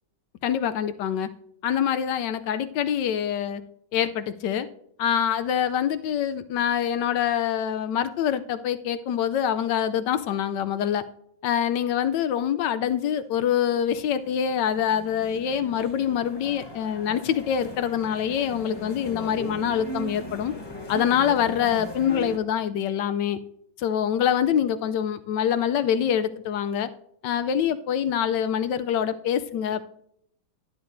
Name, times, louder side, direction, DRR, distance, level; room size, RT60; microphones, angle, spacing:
voice 1, 0.4-1.3 1.6-3.6 3.9-4.7 5.0-11.0 11.4-20.5 20.9-23.4 23.8-26.9 27.2-29.9, left 9 dB, 75° left, 11 dB, 1.1 m, -25 dB
sound 1, 13.7-22.4, equal, 30° left, 0.4 m, -39 dB
12.0 x 11.0 x 2.6 m, 0.71 s
omnidirectional pair, 2.2 m